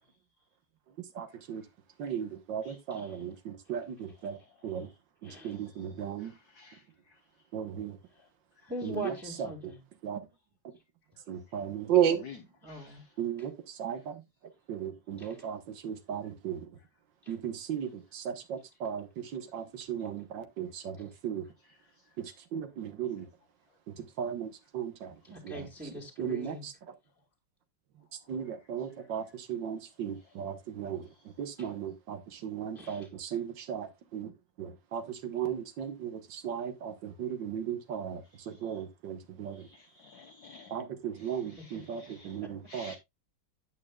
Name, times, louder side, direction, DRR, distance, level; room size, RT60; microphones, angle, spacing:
voice 1, 1.2-1.6 2.0-4.4 4.6-4.9 5.2-6.3 7.5-8.0 8.8-9.1 10.0-10.2 11.3-12.2 13.2-14.2 14.7-16.7 17.3-21.4 22.2-23.3 23.9-25.1 25.4-25.7 26.2-26.7 28.3-31.1 31.4-34.3 34.6-39.7 40.7-43.0, right 9 dB, 85° right, 1.8 m, -35 dB
voice 2, 2.9-3.3 5.2-5.6 8.1-8.2 8.6-9.8 12.6-13.0 13.4-13.5 15.2-15.5 17.2-17.3 21.0-21.1 25.2-26.7 31.6-31.7 32.7-33.1 41.4-41.6 42.4-42.5, right 1 dB, 5° right, 1.7 m, -42 dB
voice 3, 4.3-4.9 5.5-5.7 6.2-6.8 8.6-8.7 12.2-12.4 12.7-13.0 38.3-38.8 39.5-40.8 41.2-42.4 42.7-43.0, left 4 dB, 60° left, 1.5 m, -53 dB
9.9 x 8.7 x 2.3 m
omnidirectional pair, 1.9 m